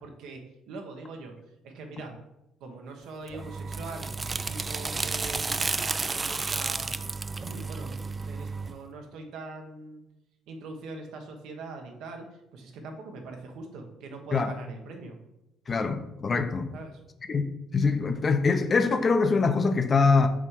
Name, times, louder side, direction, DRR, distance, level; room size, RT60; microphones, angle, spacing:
voice 1, 0.0-1.3 1.6-2.2 2.6-5.6 6.1-6.9 7.4-10.0 10.5-12.3 12.5-15.2 16.7-17.0, right 3 dB, 75° right, 1.2 m, -42 dB
sound 1, 3.3-8.8, right 4 dB, 25° right, 0.3 m, -32 dB
voice 2, 15.7-16.7 17.3-17.5 17.7-20.3, left 4 dB, 35° left, 0.6 m, -23 dB
5.8 x 3.7 x 4.8 m
cardioid pair, 105°, 0 cm